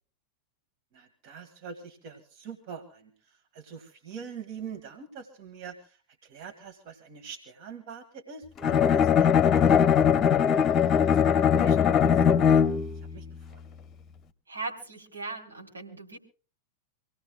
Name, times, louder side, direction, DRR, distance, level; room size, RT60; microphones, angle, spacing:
voice 1, 0.9-10.4 11.0-12.3 13.1-13.6, right 6 dB, 45° right, 5 dB, 2.1 m, -44 dB
Bowed string instrument, 8.6-13.0, left 7 dB, 25° left, 1.0 m, -21 dB
voice 2, 14.5-16.2, right 3 dB, 75° right, -1 dB, 3.7 m, -38 dB
26.5 x 18.0 x 2.3 m, 0.36 s
figure-of-eight pair, 90°, 0 cm